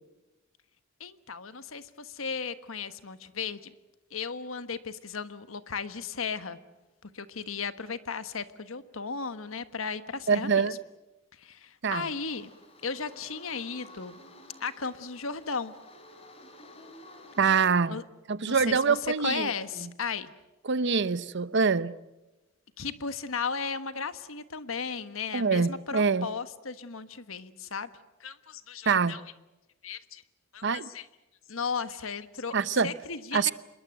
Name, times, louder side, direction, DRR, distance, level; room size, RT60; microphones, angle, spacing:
voice 1, 1.0-3.7 4.1-6.6 7.0-10.8 11.4-12.5 12.8-14.2 14.6-15.7 17.9-18.0 18.4-20.3 22.8-27.9 28.2-29.2 29.8-30.2 30.5-31.1 31.5-32.5 32.8-33.5, left 5 dB, 80° left, 1.4 m, -35 dB
voice 2, 10.3-10.7 11.8-12.1 17.4-18.0 18.3-19.5 20.7-21.9 25.3-26.3 28.9-29.2 30.6-30.9 32.5-32.9 33.3-33.5, right 5 dB, 60° right, 0.8 m, -25 dB
sound 1, 12.3-17.7, left 1 dB, 30° left, 3.9 m, -52 dB
26.5 x 22.0 x 7.9 m
head